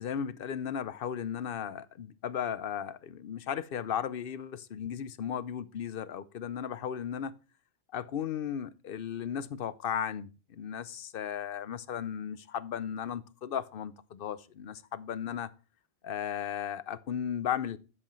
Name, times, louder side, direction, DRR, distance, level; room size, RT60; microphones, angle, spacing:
voice 1, 0.0-7.4 7.9-15.5 16.0-17.8, left 8 dB, 65° left, 0.8 m, -35 dB
11.0 x 7.8 x 3.1 m
omnidirectional pair, 1.1 m